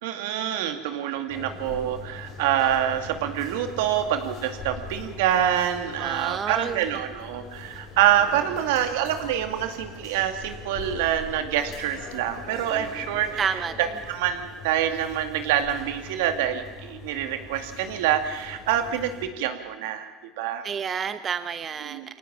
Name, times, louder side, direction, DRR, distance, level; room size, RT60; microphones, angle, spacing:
voice 1, 0.0-13.4 13.8-20.1 20.4-20.7 21.9-22.1, right 10 dB, 80° right, 6 dB, 2.4 m, -26 dB
sound 1, 1.3-19.3, left 4 dB, 60° left, 5.5 m, -42 dB
voice 2, 6.0-6.8 13.4-13.8 20.6-22.2, right 7 dB, 35° right, 10 dB, 1.0 m, -30 dB
23.0 x 18.0 x 8.9 m, 1.2 s
supercardioid pair, 90°, 0 cm